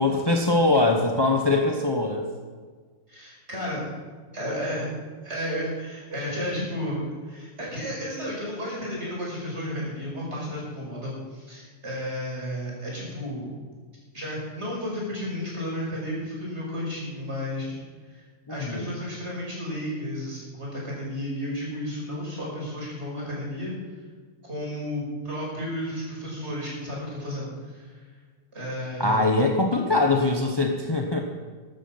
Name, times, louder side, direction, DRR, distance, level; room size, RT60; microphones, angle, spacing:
voice 1, 0.0-2.3 18.5-18.9 29.0-31.2, left 2 dB, 25° left, 3 dB, 0.5 m, -22 dB
voice 2, 3.1-3.8 4.3-4.9 5.2-13.5 14.1-17.8 18.1-18.2 18.5-23.7 24.4-27.9 28.5-29.3, equal, 30° right, -4 dB, 5.9 m, -32 dB
14.5 x 12.5 x 5.8 m, 1.5 s
omnidirectional pair, 2.4 m